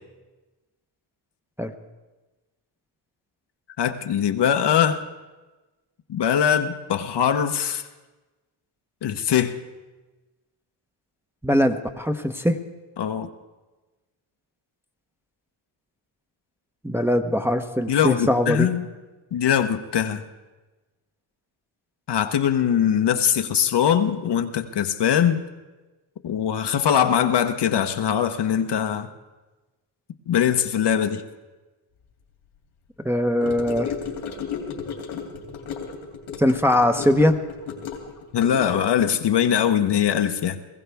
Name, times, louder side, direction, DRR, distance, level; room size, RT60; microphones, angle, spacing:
voice 1, 3.8-5.0 6.1-7.8 9.0-9.6 13.0-13.3 17.9-18.9 19.3-20.2 22.1-25.4 26.2-29.1 30.3-31.2 38.3-40.6, left 9 dB, 55° left, 8 dB, 0.9 m, -22 dB
voice 2, 11.4-12.6 16.8-18.7 33.0-33.9 36.4-37.3, left 1 dB, 5° right, 5 dB, 0.8 m, -21 dB
Gurgling / Car passing by / Sink (filling or washing), 33.4-39.1, left 6 dB, 85° left, 2.8 m, -34 dB
20.0 x 15.0 x 3.5 m, 1.2 s
cardioid pair, 70°, 50 cm